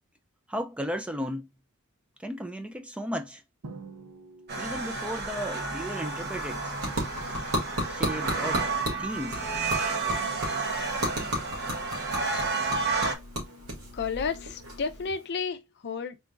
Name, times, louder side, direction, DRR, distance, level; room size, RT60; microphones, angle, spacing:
voice 1, 0.5-1.5 2.2-3.4 4.6-6.7 7.9-8.7 9.0-9.4, equal, 5° right, 0.3 m, -35 dB
Drum, 3.6-5.3, right 3 dB, 85° right, 0.7 m, -46 dB
sound 1, 4.5-13.1, right 4 dB, 50° right, 0.8 m, -31 dB
sound 2, 5.8-15.3, equal, 70° right, 1.8 m, -35 dB
voice 2, 13.9-16.2, left 5 dB, 50° left, 0.5 m, -32 dB
3.8 x 2.4 x 3.7 m
head